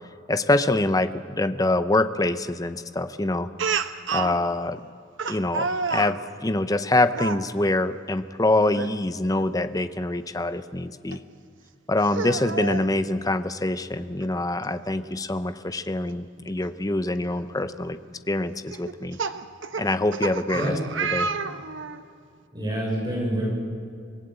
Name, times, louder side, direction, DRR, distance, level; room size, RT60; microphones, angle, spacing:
voice 1, 0.3-3.5 4.1-4.8 5.3-11.2 11.9-18.0 18.3-19.2 19.8-21.3, left 2 dB, 20° left, 11 dB, 0.7 m, -25 dB
Speech, 3.6-4.4 5.2-6.2 7.1-7.4 8.7-8.9 9.3-9.4 11.1-11.2 12.0-12.9 14.2-14.3 14.6-14.7 16.6-16.7 17.3-17.6 18.7-22.0, right 5 dB, 75° right, 1.0 m, -29 dB
voice 2, 22.5-23.5, right 1 dB, 20° right, -3 dB, 6.2 m, -27 dB
25.5 x 17.5 x 8.0 m, 2.3 s
head